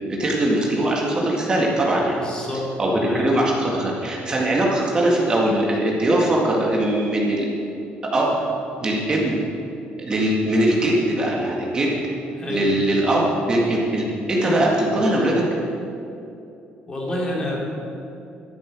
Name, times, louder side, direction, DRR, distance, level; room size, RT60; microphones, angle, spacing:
voice 1, 0.2-2.2 2.8-7.5 8.1-8.4 8.8-9.4 10.0-12.0 12.5-15.4, right 1 dB, 25° right, -3 dB, 1.9 m, -21 dB
voice 2, 2.2-2.7 3.0-3.3 12.4-12.7 16.9-17.6, left 1 dB, 20° left, -2 dB, 2.8 m, -28 dB
12.5 x 12.0 x 6.2 m, 2.7 s
cardioid pair, 160°, 4 cm